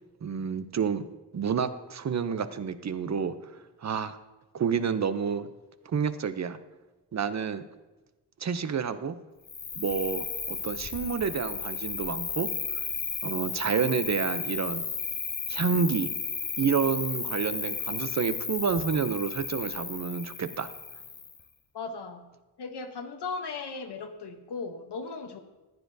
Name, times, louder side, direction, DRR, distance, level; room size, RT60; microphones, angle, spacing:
voice 1, 0.2-1.1 1.3-3.5 3.8-4.2 4.5-5.5 5.8-6.6 7.1-7.6 8.4-9.2 9.8-12.5 13.2-14.8 15.5-16.1 16.6-20.7, right 6 dB, 45° right, 12 dB, 0.5 m, -29 dB
Cricket, 9.5-21.4, left 5 dB, 30° left, 0.6 m, -34 dB
voice 2, 21.7-22.3 22.6-25.4, left 4 dB, 75° left, 5 dB, 0.9 m, -37 dB
15.0 x 10.0 x 2.6 m, 1.2 s
wide cardioid pair, 145°, 41 cm